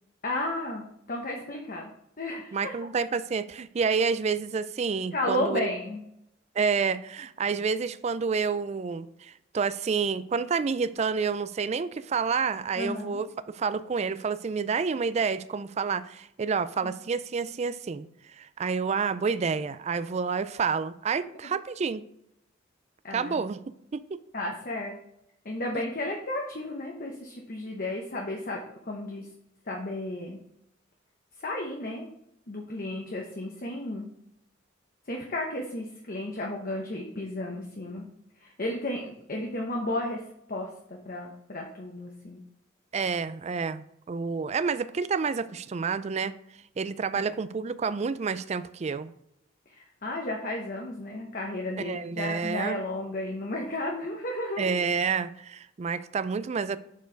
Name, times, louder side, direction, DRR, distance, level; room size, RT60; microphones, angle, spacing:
voice 1, 0.2-1.9 2.2-2.7 5.1-6.0 12.8-13.2 16.8-16.9 23.0-23.4 24.3-24.9 25.4-29.3 29.7-30.4 31.4-32.1 32.5-34.1 35.1-38.1 38.4-40.2 40.5-42.4 47.1-47.3 49.7-54.7, left 1 dB, 45° left, 1 dB, 0.9 m, -33 dB
voice 2, 2.5-5.7 6.6-18.1 18.4-22.0 23.1-23.6 23.9-24.2 42.9-46.3 46.8-49.1 51.8-52.8 54.6-56.8, right 5 dB, 35° right, 14 dB, 0.3 m, -29 dB
7.2 x 4.5 x 4.6 m, 0.78 s
head